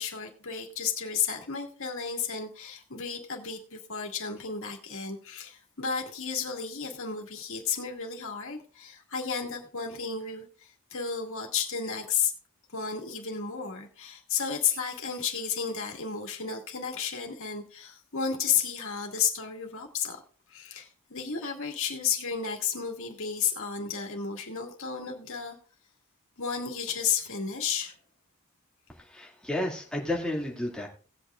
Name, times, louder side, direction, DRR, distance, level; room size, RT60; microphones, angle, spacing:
voice 1, 0.0-12.3 12.7-20.2 20.5-25.6 26.4-27.9, left 7 dB, 65° left, 2 dB, 2.2 m, -32 dB
voice 2, 28.9-30.9, left 1 dB, 5° left, -2 dB, 2.3 m, -32 dB
18.0 x 8.4 x 2.5 m, 0.40 s
head